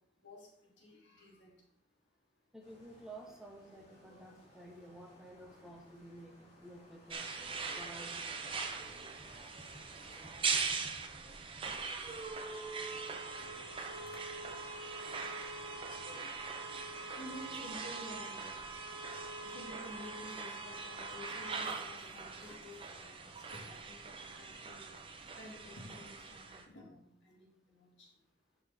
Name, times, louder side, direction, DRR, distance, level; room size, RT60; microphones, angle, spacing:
voice 1, 0.2-1.5 17.2-18.5 19.4-24.9 25.4-28.1, left 1 dB, 80° left, -1 dB, 2.6 m, -51 dB
voice 2, 2.5-7.3 7.8-8.3 9.7-9.8 10.2-10.3, right 1 dB, 5° right, 1 dB, 1.1 m, -52 dB
sound 1, 2.6-10.4, equal, 35° left, 3.8 m, -62 dB
sound 2, 7.1-26.7, right 4 dB, 30° right, 0.9 m, -41 dB
11.0 x 5.9 x 3.6 m, 0.70 s
head